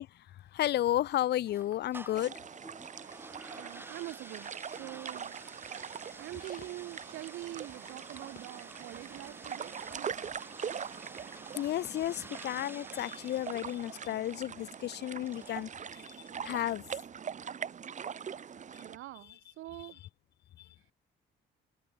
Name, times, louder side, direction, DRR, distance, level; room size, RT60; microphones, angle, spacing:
voice 1, 0.0-2.4 11.6-16.8 19.8-19.9 20.6-20.7, left 13 dB, 60° left, 0.4 m, -33 dB
sound 1, 0.7-15.4, left 7 dB, 45° left, 1.5 m, -63 dB
sound 2, 1.5-16.7, right 2 dB, 10° right, 1.2 m, -52 dB
sound 3, 2.1-19.0, right 7 dB, 40° right, 0.7 m, -43 dB
voice 2, 3.6-5.4 6.2-10.3 18.8-20.0, right 16 dB, 80° right, 0.8 m, -45 dB
cardioid pair, 90°, 20 cm